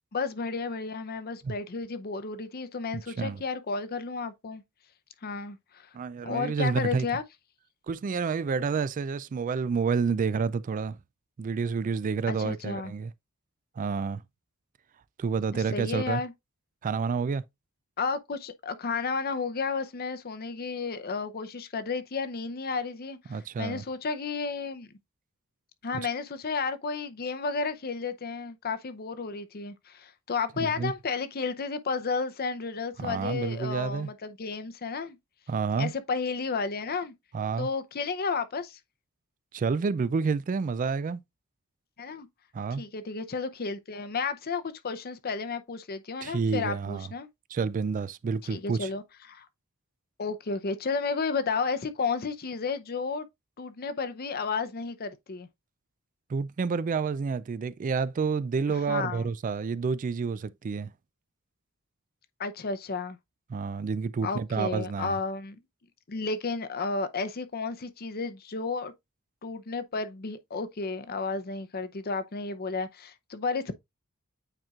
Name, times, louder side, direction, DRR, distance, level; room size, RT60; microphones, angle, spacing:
voice 1, 0.1-4.6 5.2-5.9 6.2-7.2 12.3-12.9 15.5-16.3 18.0-24.9 25.8-35.2 35.8-37.1 37.6-38.8 42.0-42.3 42.7-47.3 48.5-49.5 50.2-53.2 53.6-55.5 58.7-59.3 62.4-63.2 64.2-65.6 66.1-68.9 69.4-73.7, left 4 dB, 45° left, 0.6 m, -32 dB
voice 2, 5.9-7.1 7.9-11.0 11.4-13.1 13.8-14.2 15.2-16.2 16.8-17.4 23.3-23.8 30.6-30.9 33.0-34.1 35.5-35.9 37.3-37.7 39.5-41.2 42.5-42.8 46.2-47.1 47.5-48.9 56.3-60.9 63.5-65.2, right 5 dB, 40° right, 0.3 m, -29 dB
8.9 x 4.4 x 2.4 m
head